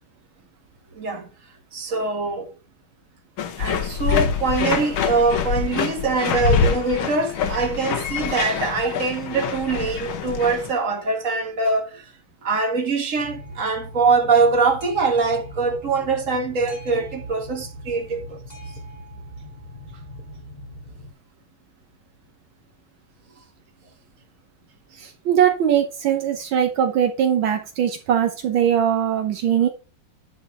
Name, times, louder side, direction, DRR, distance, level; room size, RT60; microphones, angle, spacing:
voice 1, 0.9-1.3 1.7-2.5 3.6-12.1 12.4-18.4, right 4 dB, 40° right, 2.1 m, -23 dB
sound 1, 3.4-10.7, left 6 dB, 80° left, 1.9 m, -25 dB
Boat Water vehicle, 13.2-21.1, equal, 20° left, 2.2 m, -40 dB
voice 2, 24.9-29.7, right 9 dB, 75° right, 1.7 m, -21 dB
10.5 x 4.3 x 5.4 m
omnidirectional pair, 2.3 m